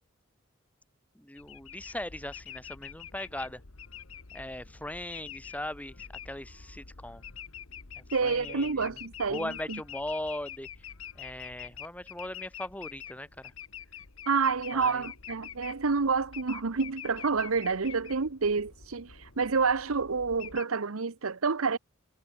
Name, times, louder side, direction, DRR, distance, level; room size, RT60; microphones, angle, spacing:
voice 1, 1.1-3.6 4.3-7.2 8.2-9.0 9.3-10.9 11.1-13.5 14.7-15.1, left 1 dB, 5° left, 2.4 m, -39 dB
sound 1, 1.4-20.6, left 8 dB, 80° left, 1.6 m, -46 dB
voice 2, 8.1-9.8 14.3-21.8, right 4 dB, 90° right, 0.9 m, -28 dB
head